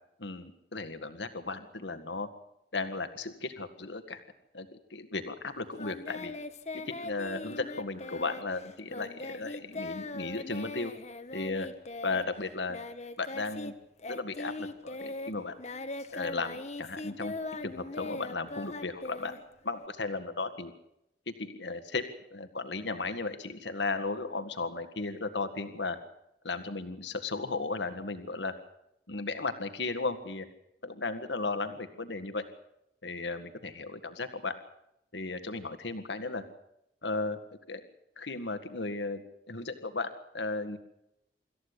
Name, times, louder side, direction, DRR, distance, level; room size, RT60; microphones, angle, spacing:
voice 1, 0.2-2.3 2.7-4.2 4.5-6.3 6.9-10.9 11.3-11.7 12.0-12.8 13.2-13.7 14.1-15.5 16.1-17.3 17.6-19.3 19.6-20.7 21.4-22.0 22.3-26.0 26.4-28.5 29.1-30.5 30.8-32.4 33.0-34.5 35.1-36.4 37.0-37.4 37.7-37.8 38.2-39.2 39.5-40.8, left 3 dB, 80° left, 9 dB, 1.9 m, -35 dB
Singing, 5.8-13.7 14.0-19.9, left 2 dB, 40° left, 1.4 m, -40 dB
26.0 x 14.5 x 8.4 m, 0.83 s
head